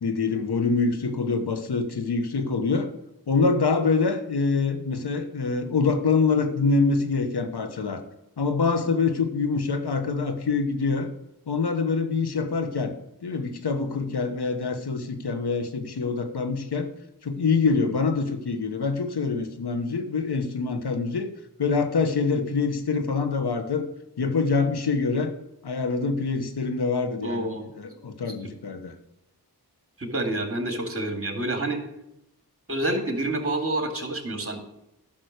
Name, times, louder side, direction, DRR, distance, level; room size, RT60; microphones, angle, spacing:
voice 1, 0.0-2.9 3.3-8.0 8.4-11.1 11.5-12.9 13.2-16.9 17.2-21.3 21.6-23.9 24.2-25.3 25.6-27.5 27.7-28.9, left 4 dB, 85° left, 8 dB, 1.2 m, -25 dB
voice 2, 27.2-27.7 28.3-28.4 30.0-31.8 32.7-34.6, right 1 dB, 35° right, 4 dB, 2.4 m, -28 dB
10.5 x 6.2 x 6.5 m, 0.86 s
cardioid pair, 45°, 38 cm